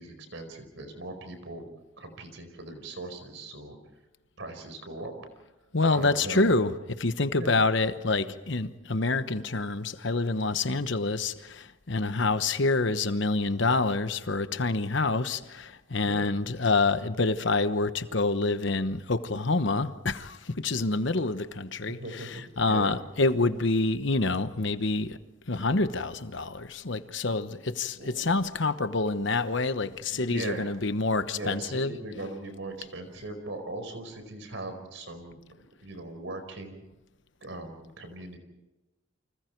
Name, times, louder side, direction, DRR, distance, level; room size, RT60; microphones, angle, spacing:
voice 1, 0.0-1.7 2.0-3.8 4.4-5.1 5.9-6.5 7.3-7.5 15.9-16.3 20.7-20.8 21.9-23.0 27.4-27.5 28.0-28.3 29.8-30.7 31.2-36.8 37.4-38.4, right 2 dB, 65° right, 4.7 m, -40 dB
voice 2, 5.7-25.2 25.5-32.0, left 3 dB, 60° left, 1.1 m, -27 dB
29.5 x 26.0 x 4.6 m
head